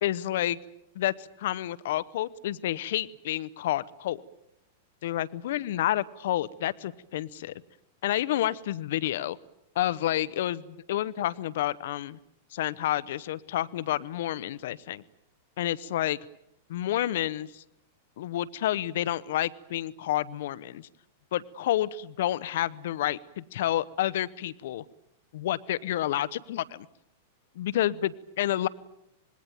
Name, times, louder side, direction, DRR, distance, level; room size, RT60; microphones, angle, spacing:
voice 1, 0.0-0.6 0.9-4.2 5.0-7.5 8.0-9.4 9.7-12.2 12.5-15.0 15.6-16.2 16.7-17.6 18.2-20.9 21.3-24.8 25.3-26.9 27.5-28.7, left 13 dB, 55° left, 17 dB, 1.0 m, -29 dB
26.5 x 21.5 x 9.3 m, 0.80 s
figure-of-eight pair, 95°, 0 cm